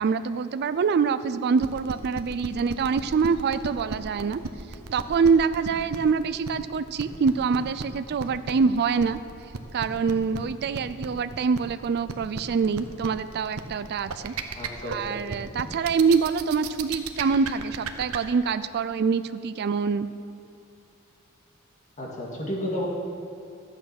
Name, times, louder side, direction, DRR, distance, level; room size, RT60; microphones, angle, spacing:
voice 1, 0.0-4.4 4.9-9.2 9.7-14.3 14.8-20.1, right 5 dB, 50° right, 12 dB, 0.4 m, -25 dB
sound 1, 1.6-18.2, right 5 dB, 80° right, 0.8 m, -34 dB
voice 2, 14.6-15.2 22.0-22.9, left 1 dB, 35° left, -3 dB, 1.9 m, -32 dB
13.5 x 8.8 x 5.9 m, 2.6 s
head